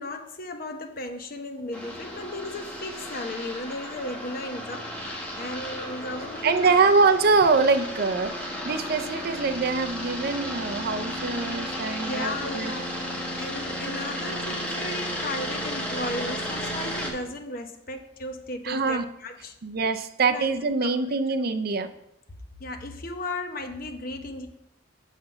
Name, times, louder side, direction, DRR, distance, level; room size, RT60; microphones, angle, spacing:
voice 1, 0.0-6.9 12.0-19.5 20.3-20.5 20.8-20.9 22.6-24.5, left 2 dB, 50° left, 5 dB, 0.9 m, -35 dB
sound 1, 1.7-17.1, equal, 5° left, 1.5 m, -34 dB
voice 2, 6.4-12.7 18.6-19.0 19.6-21.9, right 4 dB, 55° right, 8 dB, 0.5 m, -24 dB
6.8 x 5.8 x 5.6 m, 0.82 s
head